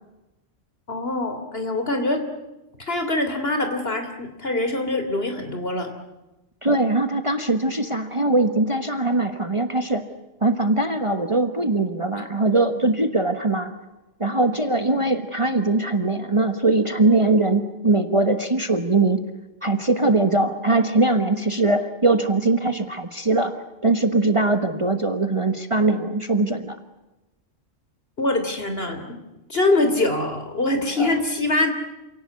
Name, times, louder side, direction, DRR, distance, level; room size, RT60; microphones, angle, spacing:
voice 1, 0.9-2.2 2.9-5.9 28.2-29.1 29.5-31.7, left 2 dB, 50° left, 6 dB, 3.5 m, -24 dB
voice 2, 6.6-10.0 10.4-13.7 14.2-19.2 19.6-23.5 23.8-26.8 31.0-31.1, right 2 dB, 25° right, 8 dB, 1.3 m, -21 dB
28.5 x 17.5 x 9.5 m, 1.0 s
omnidirectional pair, 1.3 m